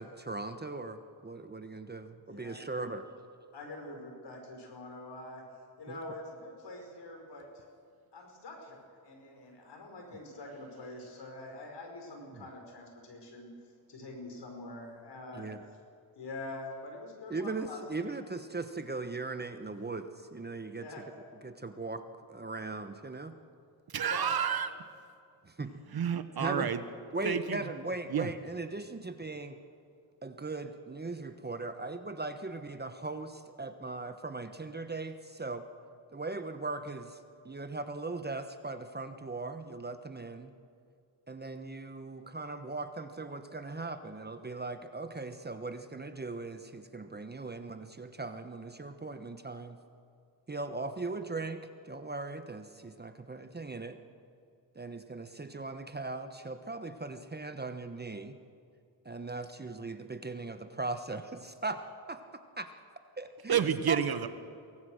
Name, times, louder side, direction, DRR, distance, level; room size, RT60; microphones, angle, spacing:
voice 1, 0.0-3.0 5.9-6.0 12.3-12.5 15.3-15.6 17.3-20.9 21.4-23.3 25.4-25.8 26.4-26.7 27.1-29.6 30.2-35.7 36.1-40.5 41.3-49.8 50.5-54.0 54.7-58.3 59.0-61.8 62.1-62.2 62.6-62.7 63.2-64.0, right 3 dB, 20° right, 8 dB, 1.2 m, -39 dB
voice 2, 2.3-2.9 3.5-5.4 5.8-7.6 8.1-13.5 13.9-15.5 16.2-17.8 20.7-21.0 24.0-24.3, left 2 dB, 60° left, 3 dB, 5.6 m, -45 dB
voice 3, 23.9-24.7 25.9-26.8 27.2-27.6 28.1-28.3 63.5-64.3, right 8 dB, 50° right, 11 dB, 1.3 m, -29 dB
23.5 x 17.5 x 6.5 m, 2.3 s
cardioid pair, 70°, 47 cm